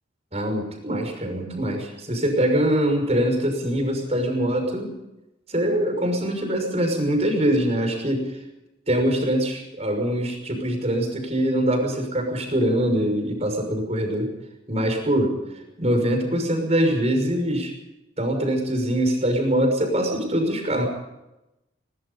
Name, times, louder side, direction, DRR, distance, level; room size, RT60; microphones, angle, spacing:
voice 1, 0.3-4.9 5.5-8.4 8.9-14.3 14.7-17.7 18.2-20.9, right 1 dB, 35° right, 5 dB, 6.1 m, -23 dB
22.5 x 22.0 x 5.5 m, 0.93 s
head